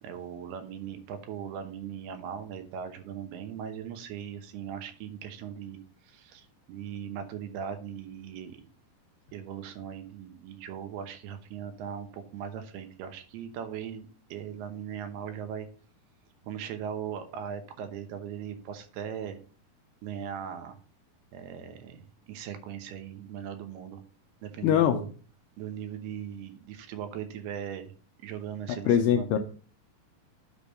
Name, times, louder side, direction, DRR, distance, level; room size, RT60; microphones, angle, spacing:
voice 1, 0.0-8.7 9.3-15.7 16.4-19.4 20.0-20.8 21.3-24.0 24.4-25.1 25.6-27.9 28.2-29.4, right 8 dB, 90° right, 7 dB, 3.0 m, -39 dB
voice 2, 24.6-25.0 28.9-29.4, left 9 dB, 85° left, 5 dB, 1.9 m, -22 dB
9.8 x 3.5 x 5.2 m, 0.41 s
omnidirectional pair, 4.5 m